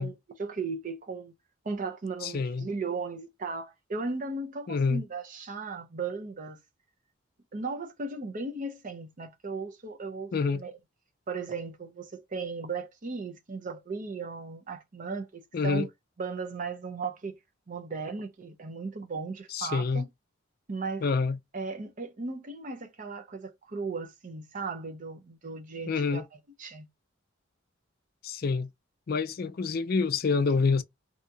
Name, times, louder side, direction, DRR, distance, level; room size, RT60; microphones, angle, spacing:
voice 1, 0.0-1.3 1.6-6.6 7.5-10.7 11.3-15.9 16.2-17.4 17.7-20.1 20.7-21.0 21.5-26.3 26.6-26.9, right 4 dB, 40° right, 0.5 m, -36 dB
voice 2, 2.2-2.7 4.7-5.0 10.3-10.6 15.5-15.9 19.5-20.0 21.0-21.4 25.9-26.2 28.2-28.7 29.1-30.8, left 4 dB, 45° left, 0.4 m, -27 dB
2.8 x 2.3 x 2.6 m
head